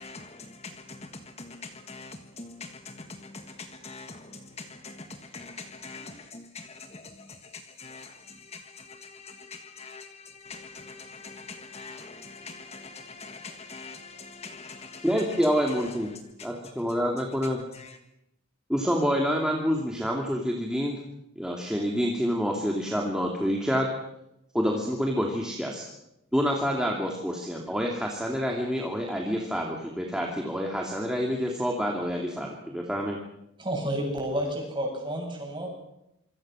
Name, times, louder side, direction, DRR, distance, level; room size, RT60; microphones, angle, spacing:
voice 1, 0.0-16.5 17.7-18.0, left 4 dB, 30° left, 7 dB, 1.5 m, -44 dB
voice 2, 15.0-16.1 16.4-17.6 18.7-21.0 21.4-23.9 24.5-25.8 26.3-33.2, equal, 5° right, -1 dB, 2.6 m, -27 dB
voice 3, 33.6-35.7, right 1 dB, 20° right, 1 dB, 8.0 m, -30 dB
27.0 x 24.5 x 6.4 m, 0.84 s
head